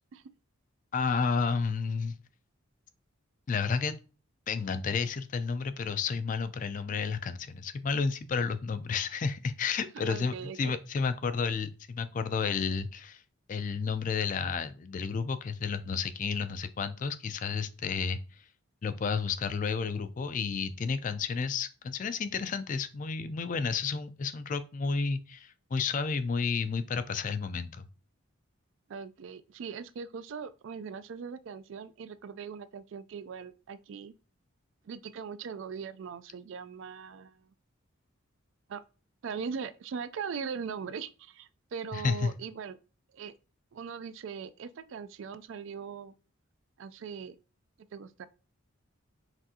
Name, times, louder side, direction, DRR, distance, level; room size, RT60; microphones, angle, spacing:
voice 1, 0.9-2.2 3.5-3.9 4.5-13.2 13.5-18.2 18.8-27.9 41.9-42.3, left 5 dB, 40° left, 0.3 m, -31 dB
voice 2, 10.0-10.7 28.9-34.1 34.8-37.5 38.7-38.8 39.2-42.8 43.1-43.3 43.7-46.1 46.8-47.4 47.9-48.3, right 6 dB, 65° right, 0.3 m, -40 dB
5.9 x 2.5 x 2.7 m
head